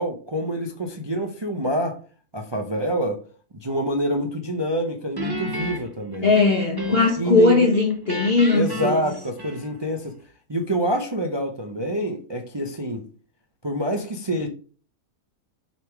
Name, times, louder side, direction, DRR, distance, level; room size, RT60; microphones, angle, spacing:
voice 1, 0.0-2.0 2.3-3.2 3.5-6.3 6.9-7.7 8.5-10.2 10.5-13.0 13.6-14.5, equal, 40° right, 0.4 m, -26 dB
Guitar, 5.2-7.3 7.6-9.9, left 2 dB, 20° right, 0.9 m, -32 dB
voice 2, 6.2-9.0, left 3 dB, 40° left, 1.1 m, -19 dB
6.5 x 3.6 x 4.6 m
omnidirectional pair, 1.6 m